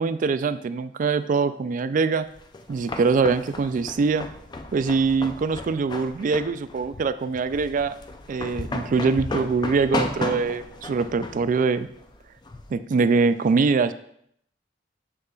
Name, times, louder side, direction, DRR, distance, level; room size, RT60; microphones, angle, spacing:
voice 1, 0.0-2.3 2.7-4.3 4.7-8.0 8.3-11.9 12.7-13.9, right 4 dB, 45° right, 13 dB, 0.3 m, -23 dB
sound 1, 2.3-12.7, left 2 dB, 25° left, 0.4 m, -34 dB
6.8 x 6.6 x 2.3 m, 0.69 s
head